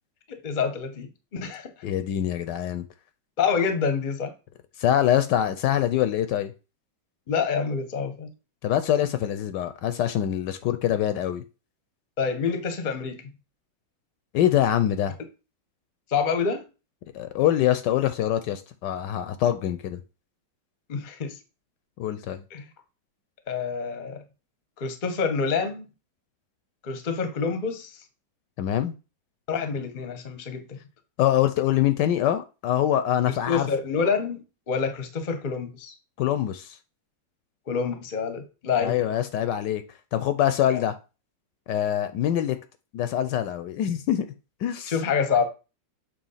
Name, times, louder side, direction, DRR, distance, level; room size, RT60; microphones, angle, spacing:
voice 1, 0.3-1.7 3.4-4.3 7.3-8.3 12.2-13.3 16.1-16.6 20.9-21.4 22.5-22.6 23.5-24.2 24.8-25.8 26.8-27.9 29.5-30.8 33.2-35.9 37.7-39.0 40.7-40.8 44.9-45.5, left 5 dB, 40° left, 0.7 m, -27 dB
voice 2, 1.8-2.8 4.8-6.5 8.6-11.4 14.3-15.1 17.1-20.0 22.0-22.4 28.6-28.9 31.2-33.7 36.2-36.8 38.8-39.8 40.1-40.9 41.7-42.6 42.9-44.2 44.6-44.9, left 11 dB, 75° left, 1.1 m, -24 dB
7.1 x 3.0 x 5.6 m
omnidirectional pair, 2.1 m